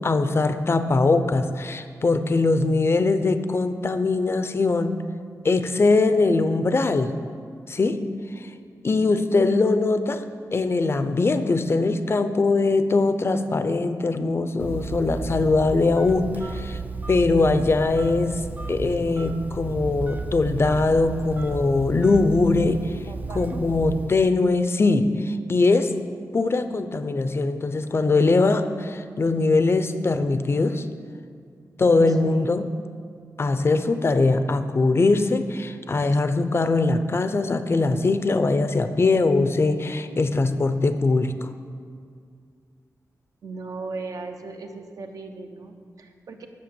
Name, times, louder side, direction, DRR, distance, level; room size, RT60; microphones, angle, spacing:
voice 1, 0.0-5.0 5.4-7.1 7.7-8.0 8.4-8.5 8.8-10.2 10.5-16.8 17.1-18.4 18.7-22.9 23.3-25.9 26.3-30.9 31.8-32.7 33.4-41.5, left 3 dB, 40° left, 10 dB, 0.6 m, -21 dB
Telephone, 14.6-24.3, right 3 dB, 25° right, 0.5 m, -33 dB
voice 2, 23.1-23.6 31.7-31.8 32.1-32.5 43.4-46.5, right 3 dB, 65° right, 5 dB, 1.0 m, -38 dB
10.5 x 6.7 x 7.0 m, 2.2 s
wide cardioid pair, 105°, 7 cm